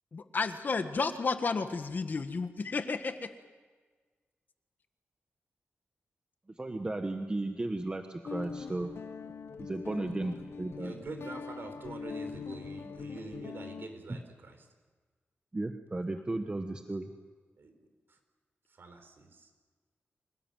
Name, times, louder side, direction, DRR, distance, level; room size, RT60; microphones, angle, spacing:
voice 1, 0.1-3.3, left 4 dB, 45° left, 8 dB, 1.6 m, -32 dB
voice 2, 6.6-8.9 9.6-10.9 15.5-17.1, right 2 dB, 20° right, 5 dB, 1.3 m, -35 dB
Guitar, 8.2-13.9, left 5 dB, 75° left, 1.0 m, -42 dB
voice 3, 10.8-14.6 17.6-17.7 18.8-19.5, right 3 dB, 60° right, 6 dB, 4.3 m, -45 dB
26.5 x 19.5 x 9.2 m, 1.4 s
wide cardioid pair, 145°, 4 cm